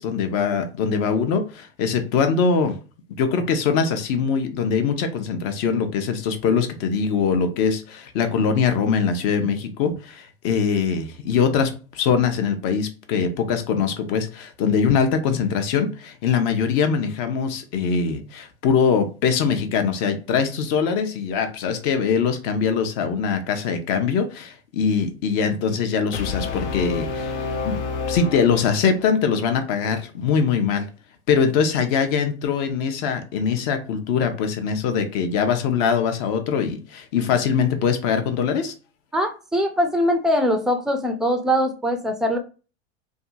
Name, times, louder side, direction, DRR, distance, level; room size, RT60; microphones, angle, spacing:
voice 1, 0.0-2.8 3.1-27.8 28.1-30.9 31.3-38.7, left 6 dB, 50° left, 0.7 m, -22 dB
Brass instrument, 26.1-29.2, left 4 dB, 85° left, 0.7 m, -29 dB
voice 2, 39.1-42.4, equal, ahead, 0.3 m, -22 dB
2.7 x 2.3 x 2.5 m
hypercardioid pair, 85°, 34 cm